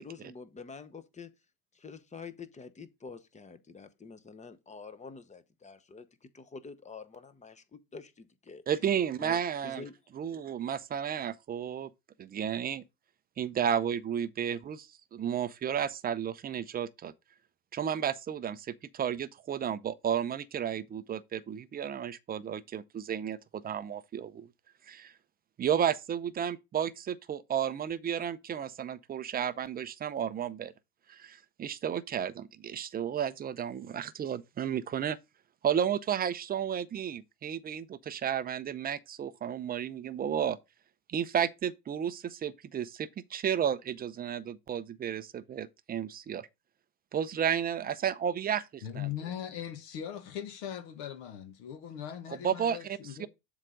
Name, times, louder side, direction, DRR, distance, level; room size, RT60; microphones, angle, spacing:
voice 1, 0.0-1.3 1.7-8.6 9.2-9.9, left 4 dB, 15° left, 0.9 m, -47 dB
voice 2, 8.7-9.8 10.1-11.9 12.2-12.8 13.4-17.1 17.7-24.5 24.9-25.1 25.6-30.7 31.1-35.2 35.6-40.6 41.1-46.5 47.1-49.1 52.4-52.8 53.2-53.3, right 8 dB, 20° right, 0.5 m, -32 dB
voice 3, 48.8-53.3, left 10 dB, 60° left, 1.6 m, -40 dB
7.4 x 3.8 x 5.1 m
hypercardioid pair, 95°, 46 cm